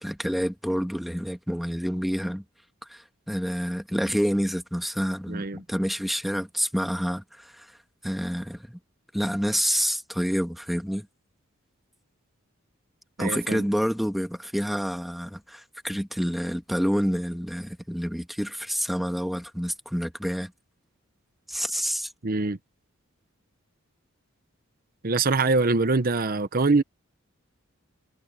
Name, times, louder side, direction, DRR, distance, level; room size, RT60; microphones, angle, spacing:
voice 1, 0.0-2.4 2.9-7.7 8.0-8.8 9.1-11.1 13.2-20.5 21.5-22.1, equal, ahead, 1.7 m, -28 dB
voice 2, 5.3-5.6 13.2-13.6 22.2-22.6 25.0-26.8, right 3 dB, 45° right, 0.9 m, -23 dB
head